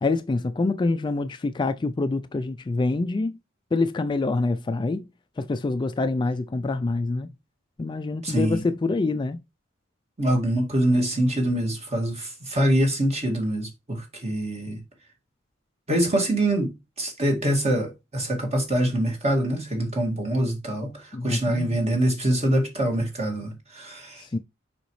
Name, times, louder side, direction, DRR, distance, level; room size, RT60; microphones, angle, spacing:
voice 1, 0.0-3.4 3.7-5.1 5.4-7.3 7.8-9.4 21.1-21.8 24.2-24.4, left 3 dB, 25° left, 0.3 m, -26 dB
voice 2, 8.2-8.6 10.2-14.8 15.9-16.7 17.0-24.2, right 1 dB, 35° right, 2.0 m, -24 dB
6.7 x 5.0 x 3.1 m
head